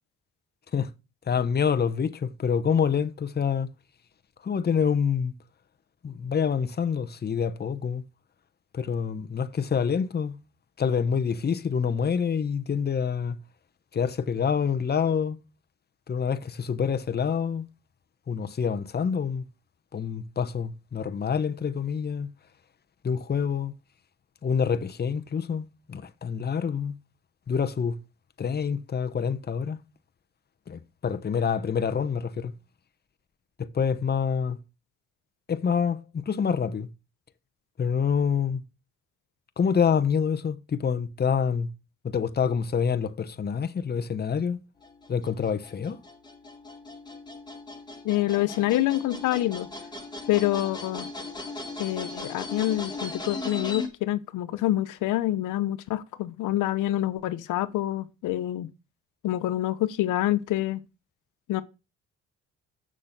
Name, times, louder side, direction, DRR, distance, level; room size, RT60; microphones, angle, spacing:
voice 1, 1.3-3.7 4.4-5.3 6.0-8.0 8.7-10.4 10.8-13.4 13.9-15.4 16.1-17.7 18.3-19.5 19.9-22.3 23.0-23.7 24.4-26.9 27.5-28.0 28.4-29.8 30.7-32.5 33.6-34.6 35.5-36.9 37.8-38.6 39.6-41.7 42.0-44.6 45.1-46.0, left 6 dB, 35° left, 0.9 m, -27 dB
sound 1, 44.8-53.9, left 2 dB, 15° left, 3.3 m, -38 dB
voice 2, 48.0-49.7 50.3-51.1 51.8-58.7 59.2-60.8 61.5-61.6, left 14 dB, 90° left, 0.9 m, -26 dB
7.5 x 6.5 x 6.6 m
cardioid pair, 90°, 30 cm